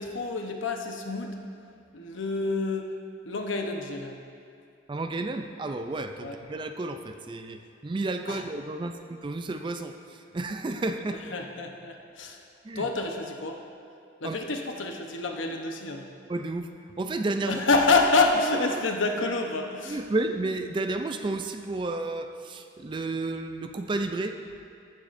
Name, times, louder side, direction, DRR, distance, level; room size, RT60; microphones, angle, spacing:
voice 1, 0.0-1.4 1.9-2.9 3.2-4.2 6.2-6.4 8.3-8.4 11.3-12.4 12.7-13.6 14.2-16.1 17.5-20.0, left 3 dB, 80° left, 3 dB, 0.9 m, -27 dB
voice 2, 4.9-10.0 10.3-11.2 12.6-12.9 14.2-14.4 16.3-16.7 17.0-17.6 18.7-18.8 19.8-24.4, right 2 dB, 25° right, 7 dB, 0.3 m, -31 dB
14.0 x 9.0 x 2.6 m, 2.4 s
head